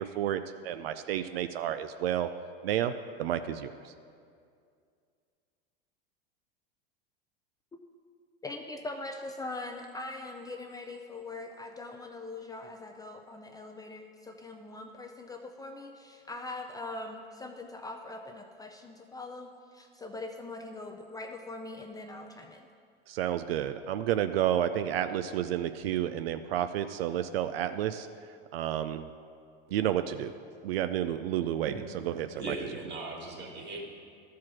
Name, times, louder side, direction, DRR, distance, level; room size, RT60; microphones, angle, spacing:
voice 1, 0.0-2.3 2.6-2.9 3.2-3.7 23.1-28.1 28.5-29.1 29.7-30.3 30.6-31.7 32.2-32.5, right 11 dB, 85° right, 10 dB, 0.4 m, -30 dB
voice 2, 8.4-22.7, left 2 dB, 15° left, 2 dB, 0.4 m, -42 dB
voice 3, 31.7-33.9, right 2 dB, 35° right, 1 dB, 1.8 m, -39 dB
12.0 x 4.7 x 6.0 m, 2.3 s
hypercardioid pair, 110°, 29 cm